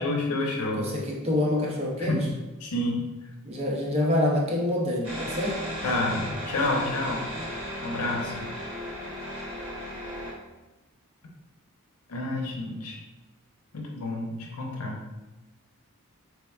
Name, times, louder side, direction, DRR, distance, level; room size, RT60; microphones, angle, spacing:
voice 1, 0.0-0.9 2.0-2.2 2.6-3.0 5.8-7.3 7.8-8.5 12.1-13.0 13.7-15.0, left 2 dB, 85° left, 0 dB, 0.7 m, -29 dB
voice 2, 0.8-2.3 3.5-5.6, left 1 dB, 30° right, -2 dB, 0.5 m, -26 dB
sound 1, 5.0-10.3, equal, 85° right, 1.3 m, -35 dB
3.3 x 3.2 x 2.3 m, 1.1 s
head